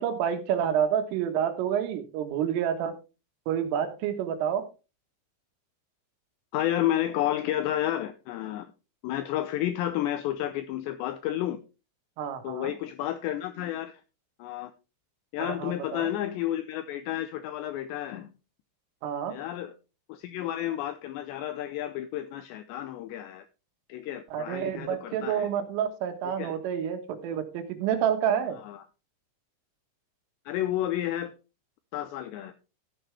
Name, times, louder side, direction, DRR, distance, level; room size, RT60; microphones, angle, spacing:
voice 1, 0.0-2.9 3.5-4.7 12.2-12.7 15.4-16.1 19.0-19.4 24.3-28.6, right 9 dB, 80° right, 8 dB, 3.9 m, -29 dB
voice 2, 6.5-8.7 9.0-11.6 12.4-14.0 14.4-14.7 15.3-18.3 19.3-19.7 20.1-23.5 23.9-25.5 26.3-26.6 28.6-28.8 30.5-31.3 31.9-32.5, left 12 dB, 85° left, 10 dB, 2.5 m, -31 dB
14.0 x 8.6 x 3.3 m, 0.30 s
omnidirectional pair, 5.7 m